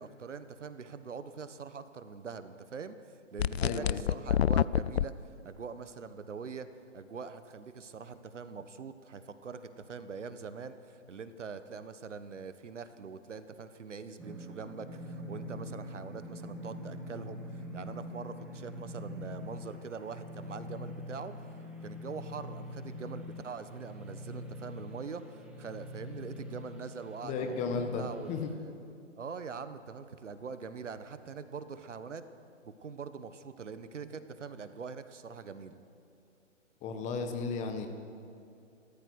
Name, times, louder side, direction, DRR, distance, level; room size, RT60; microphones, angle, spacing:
voice 1, 0.0-3.0 3.3-5.1 5.4-6.7 6.9-21.5 21.8-28.7 29.2-32.3 32.6-35.8, right 5 dB, 70° right, 11 dB, 1.5 m, -43 dB
sound 1, 3.4-5.1, left 10 dB, 55° left, 0.6 m, -27 dB
voice 2, 3.6-4.0 27.2-28.5 36.8-37.9, left 4 dB, 20° left, 5 dB, 1.6 m, -34 dB
sound 2, 14.2-28.5, left 1 dB, 5° right, 1.5 m, -44 dB
30.0 x 13.5 x 6.4 m, 2.5 s
figure-of-eight pair, 135°, 38 cm